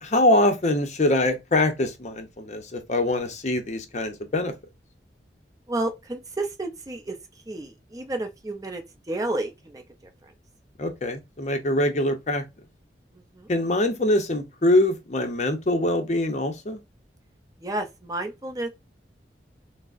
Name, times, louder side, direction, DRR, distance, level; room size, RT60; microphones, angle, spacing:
voice 1, 0.0-4.5 10.8-12.4 13.5-16.8, left 1 dB, 40° left, 0.6 m, -23 dB
voice 2, 5.7-7.2 7.5-10.1 13.1-13.5 17.6-18.7, right 2 dB, 20° right, 0.5 m, -31 dB
5.8 x 2.0 x 2.5 m
head